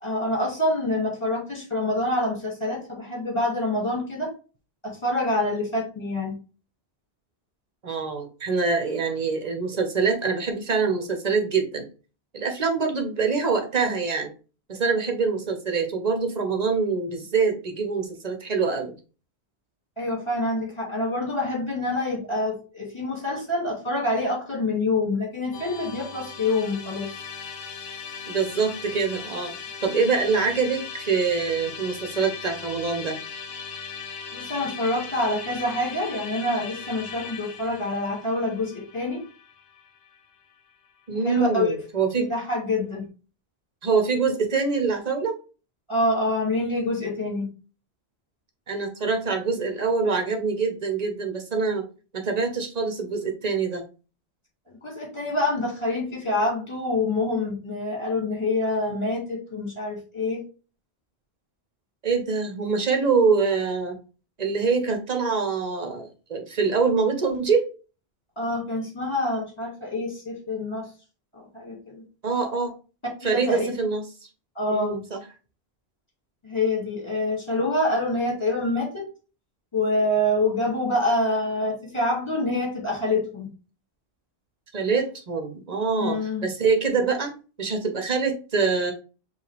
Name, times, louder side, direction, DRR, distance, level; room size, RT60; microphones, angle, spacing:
voice 1, 0.0-4.3 4.8-6.3 20.0-27.1 34.3-39.2 41.2-41.8 42.2-43.1 45.9-47.5 54.7-60.4 68.4-70.9 71.3-72.0 73.2-73.7 74.6-75.0 76.4-79.0 79.7-83.5 86.0-86.5, left 2 dB, 25° left, -2 dB, 2.1 m, -26 dB
voice 2, 7.8-11.9 12.3-14.3 14.7-19.0 28.3-29.5 29.8-33.2 41.1-42.3 43.8-45.4 48.7-51.8 52.1-53.8 62.0-64.0 64.4-67.7 72.2-72.7 73.2-74.1 74.7-75.2 84.7-88.9, right 5 dB, 45° right, 4 dB, 0.9 m, -25 dB
Musical instrument, 25.5-40.7, left 6 dB, 75° left, 0.9 m, -38 dB
5.4 x 2.6 x 3.3 m, 0.34 s
omnidirectional pair, 1.1 m